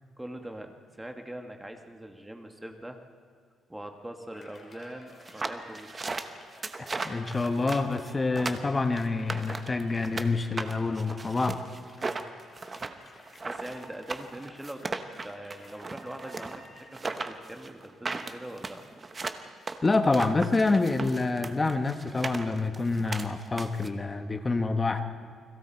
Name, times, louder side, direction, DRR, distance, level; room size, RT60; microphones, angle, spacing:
voice 1, 0.2-3.0 3.7-6.2 13.4-18.8, right 1 dB, 5° right, 5 dB, 1.4 m, -42 dB
Cheering, 4.3-17.0, left 2 dB, 35° left, 3.9 m, -54 dB
sound 1, 5.2-10.3 10.6-23.9, right 3 dB, 20° right, 1.0 m, -37 dB
voice 2, 6.8-11.6 19.8-25.0, left 3 dB, 20° left, 7 dB, 1.1 m, -27 dB
29.5 x 21.5 x 4.5 m, 2.2 s
cardioid pair, 165°, 0 cm